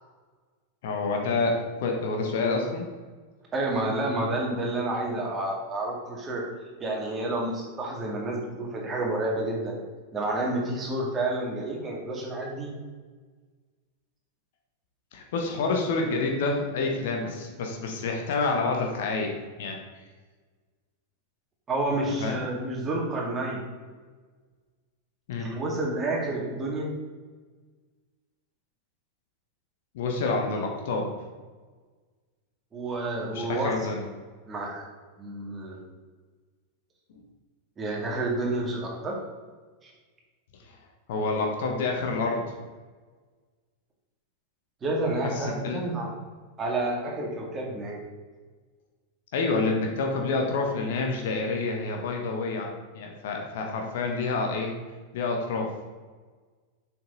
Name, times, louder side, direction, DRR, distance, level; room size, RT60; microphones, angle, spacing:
voice 1, 0.8-2.8 15.1-19.8 22.2-22.4 25.3-25.5 29.9-31.1 33.3-34.0 37.1-37.2 40.6-40.8 41.1-42.4 45.2-45.8 49.3-52.7 52.9-54.7 55.1-55.7, left 3 dB, 55° left, 2 dB, 1.2 m, -28 dB
voice 2, 3.5-6.4 6.8-9.8 10.1-12.7 21.7-23.6 25.4-26.9 32.7-33.7 34.5-34.9 35.2-35.8 37.8-39.1 39.8-39.9 44.8-46.1 46.6-48.0, right 2 dB, 20° right, -1 dB, 2.1 m, -29 dB
7.4 x 5.9 x 4.0 m, 1.4 s
figure-of-eight pair, 90°, 0 cm